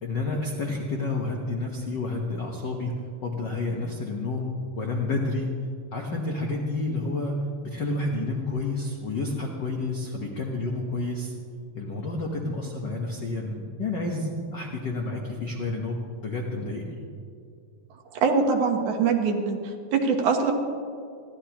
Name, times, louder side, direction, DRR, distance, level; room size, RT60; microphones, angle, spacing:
voice 1, 0.0-2.9 3.2-4.5 4.8-5.5 5.9-7.4 7.6-11.3 11.7-16.9, left 2 dB, 85° left, 0 dB, 0.9 m, -30 dB
voice 2, 18.1-19.6 19.9-20.5, right 5 dB, 70° right, 3 dB, 2.4 m, -23 dB
29.0 x 11.5 x 3.0 m, 2.3 s
omnidirectional pair, 3.8 m